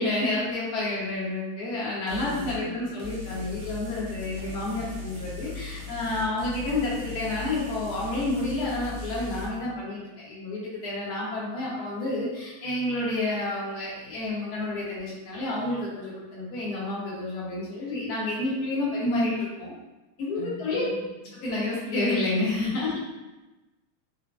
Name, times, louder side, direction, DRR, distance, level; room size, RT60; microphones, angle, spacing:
voice 1, 0.0-19.7 20.2-20.8 21.4-23.0, left 2 dB, 50° left, -7 dB, 1.4 m, -29 dB
sound 1, 2.1-2.6 3.0-9.5, left 2 dB, 65° right, 1.2 m, -38 dB
voice 2, 2.2-2.9 4.8-5.1 20.3-21.4 22.8-22.9, left 4 dB, 80° left, -6 dB, 1.4 m, -43 dB
4.6 x 2.1 x 2.4 m, 1.1 s
omnidirectional pair, 2.4 m